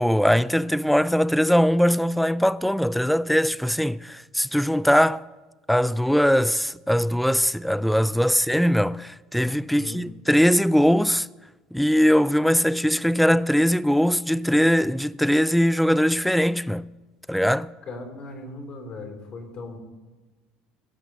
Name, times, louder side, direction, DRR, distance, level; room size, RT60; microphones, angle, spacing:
voice 1, 0.0-5.2 5.7-11.3 11.7-16.9 17.3-17.7, equal, ahead, 0.3 m, -21 dB
voice 2, 17.8-19.8, left 2 dB, 50° left, 3.7 m, -38 dB
17.0 x 6.1 x 6.8 m
hypercardioid pair, 75°, 2 cm